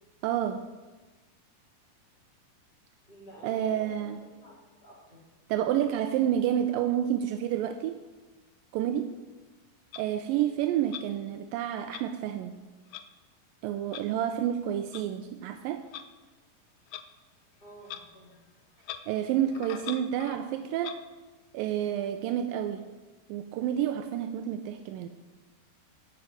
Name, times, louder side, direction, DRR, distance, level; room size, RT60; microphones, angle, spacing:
voice 1, 0.2-0.6 3.4-4.2 5.5-7.9 8.7-9.1 10.0-12.5 13.6-15.8 19.1-21.0 21.5-22.9 23.3-25.1, right 10 dB, 85° right, 7 dB, 2.3 m, -29 dB
voice 2, 3.1-5.2 8.7-9.0 17.6-18.3 19.5-19.7, equal, 15° left, -6 dB, 2.4 m, -50 dB
Clock, 9.9-10.0 10.9-11.1 11.9-12.0 12.9-13.1 13.9-14.0 14.9-15.0 15.9-16.1 16.9-17.1 17.8-18.0 18.3-18.4 18.8-19.0 19.5-20.4 20.8-21.0, left 11 dB, 90° left, 2.5 m, -41 dB
14.5 x 6.0 x 9.1 m, 1.2 s
omnidirectional pair, 4.1 m